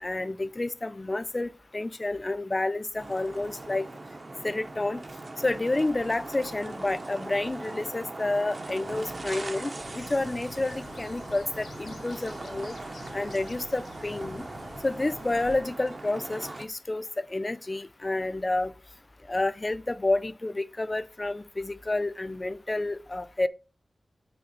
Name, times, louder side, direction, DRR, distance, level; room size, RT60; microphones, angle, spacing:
voice 1, 0.0-3.9 4.4-5.0 5.4-12.8 13.1-14.5 14.8-18.7 19.3-23.5, left 2 dB, 25° left, 0.3 m, -29 dB
sound 1, 3.0-16.7, right 2 dB, 40° right, 0.6 m, -40 dB
sound 2, 9.8-15.6, left 3 dB, 75° left, 0.7 m, -47 dB
5.3 x 4.6 x 4.2 m
wide cardioid pair, 110°, 0 cm